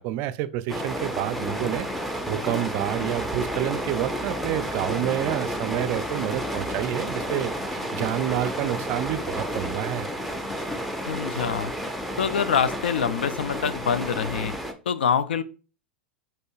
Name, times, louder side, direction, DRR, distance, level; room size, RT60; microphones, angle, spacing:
voice 1, 0.0-1.9 2.3-10.1, right 13 dB, 45° right, 0.4 m, -28 dB
sound 1, 0.7-14.7, equal, ahead, 0.7 m, -31 dB
sound 2, 5.8-11.6, equal, 15° left, 2.2 m, -52 dB
voice 2, 11.1-11.7 12.2-14.5 14.9-15.4, left 7 dB, 75° left, 0.4 m, -25 dB
5.2 x 4.3 x 2.4 m
figure-of-eight pair, 90°, 6 cm